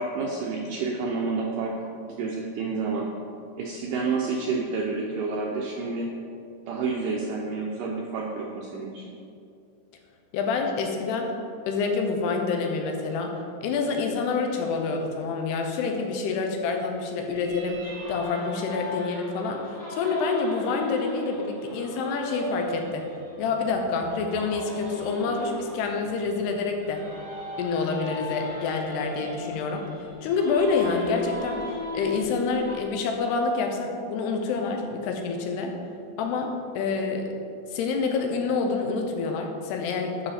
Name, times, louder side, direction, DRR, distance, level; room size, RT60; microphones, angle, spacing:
voice 1, 0.0-1.8 2.1-3.1 3.6-6.1 6.7-9.1, right 4 dB, 80° right, -1 dB, 1.9 m, -29 dB
voice 2, 10.3-11.3 11.7-13.3 13.6-23.0 23.4-27.0 27.6-29.8 30.2-31.6 31.9-35.8 36.2-37.4 37.7-40.3, left 4 dB, 85° left, 3 dB, 3.0 m, -27 dB
sound 1, 17.3-32.8, left 2 dB, 30° left, 1.5 m, -38 dB
11.5 x 5.8 x 4.3 m, 2.5 s
omnidirectional pair, 4.6 m